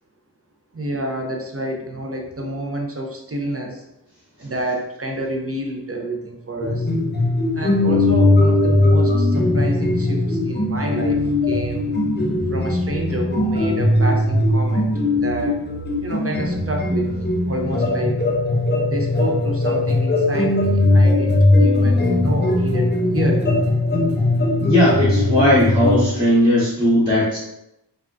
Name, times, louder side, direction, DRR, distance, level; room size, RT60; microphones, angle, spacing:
voice 1, 0.7-3.8 4.4-6.9 7.6-11.2 11.5-12.0 12.5-14.9 15.2-15.6 16.0-18.2 18.9-23.4, right 1 dB, 35° right, 2 dB, 0.5 m, -28 dB
sound 1, 6.6-26.1, left 2 dB, 25° left, 0.4 m, -19 dB
voice 2, 24.6-27.4, left 1 dB, 10° right, -10 dB, 0.8 m, -17 dB
3.5 x 2.2 x 2.4 m, 0.85 s
wide cardioid pair, 60°, 42 cm